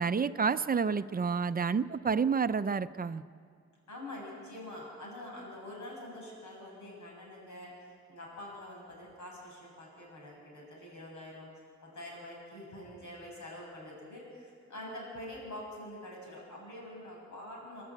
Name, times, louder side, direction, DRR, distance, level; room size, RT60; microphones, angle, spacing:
voice 1, 0.0-3.2, right 5 dB, 30° right, 12 dB, 0.5 m, -29 dB
voice 2, 3.9-11.5 11.8-17.8, left 1 dB, 90° left, -2 dB, 7.3 m, -45 dB
29.5 x 11.0 x 8.6 m, 2.2 s
wide cardioid pair, 140°, 29 cm